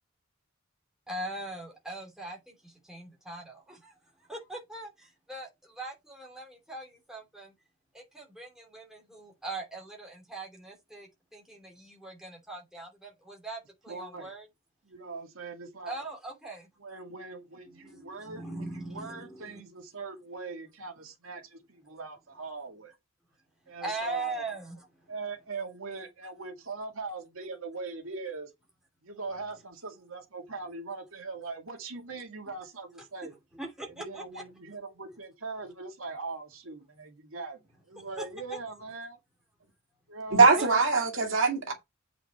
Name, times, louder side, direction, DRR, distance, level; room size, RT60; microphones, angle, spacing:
voice 1, 1.1-7.5 7.9-14.5 15.8-16.7 17.7-19.6 23.8-24.8 33.5-34.4 38.0-38.6 40.4-40.7, right 2 dB, ahead, 2.8 m, -41 dB
voice 2, 13.9-14.3 14.9-16.0 16.8-22.9 23.7-24.4 25.1-28.5 29.0-33.3 34.0-39.2 40.1-40.8, right 4 dB, 80° right, 2.2 m, -41 dB
voice 3, 40.3-41.7, right 4 dB, 65° right, 2.2 m, -21 dB
8.2 x 4.9 x 4.3 m
head